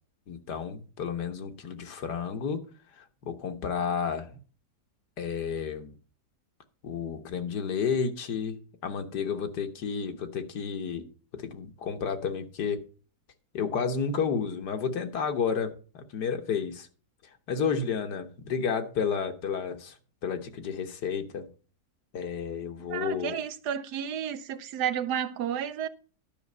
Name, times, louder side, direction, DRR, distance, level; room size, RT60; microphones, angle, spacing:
voice 1, 0.3-2.6 3.2-4.3 5.2-5.9 6.8-8.6 8.8-12.8 13.5-16.9 17.5-19.9 20.2-21.5 22.1-23.4, left 6 dB, 90° left, 1.8 m, -31 dB
voice 2, 22.9-25.9, right 9 dB, 90° right, 1.3 m, -31 dB
11.0 x 5.9 x 5.4 m
omnidirectional pair, 1.7 m